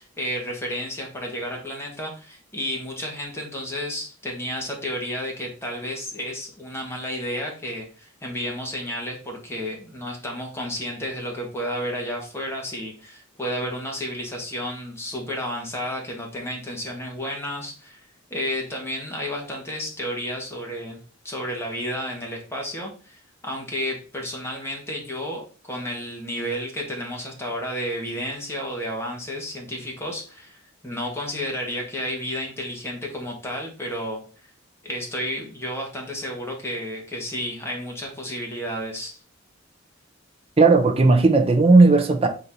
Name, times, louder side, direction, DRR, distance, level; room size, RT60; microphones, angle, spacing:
voice 1, 0.0-34.2 34.8-39.2, equal, 10° left, 1.1 m, -32 dB
voice 2, 40.6-42.3, right 3 dB, 30° right, 0.5 m, -15 dB
3.9 x 2.6 x 4.3 m
head